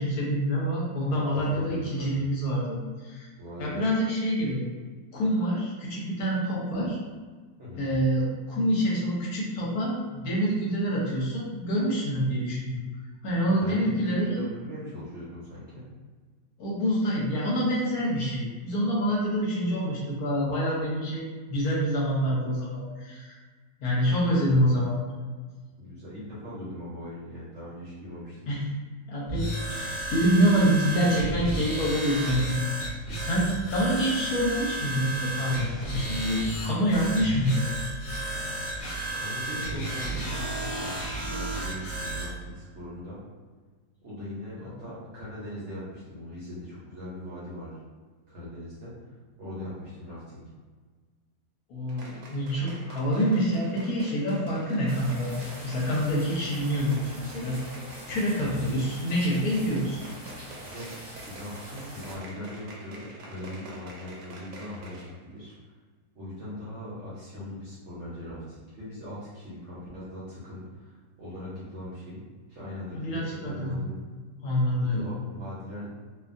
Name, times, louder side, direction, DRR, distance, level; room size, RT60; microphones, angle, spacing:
voice 1, 0.0-3.3 3.6-4.7 5.1-7.0 7.8-12.8 13.2-14.4 16.6-23.4 23.8-24.9 28.5-28.7 29.1-32.9 33.2-37.7 51.7-57.6 58.1-60.0 72.9-73.8 74.4-75.1, equal, 70° left, -5 dB, 1.0 m, -26 dB
voice 2, 1.1-2.3 3.4-3.9 7.6-7.9 13.2-15.9 24.3-24.7 25.8-28.5 33.5-33.7 39.2-43.2 44.0-47.8 48.3-50.4 57.9-58.1 58.4-58.9 60.6-60.9 61.3-65.7 66.1-72.2 72.5-74.0 74.8-75.9, left 1 dB, 60° right, -9 dB, 0.8 m, -40 dB
sound 1, 29.3-42.3, right 2 dB, 45° left, 0.9 m, -33 dB
sound 2, 51.9-65.2 65.5-65.6, right 2 dB, 80° right, 1.2 m, -47 dB
sound 3, 54.9-62.2, equal, 30° right, 0.8 m, -44 dB
2.6 x 2.2 x 2.5 m, 1.4 s
omnidirectional pair, 1.8 m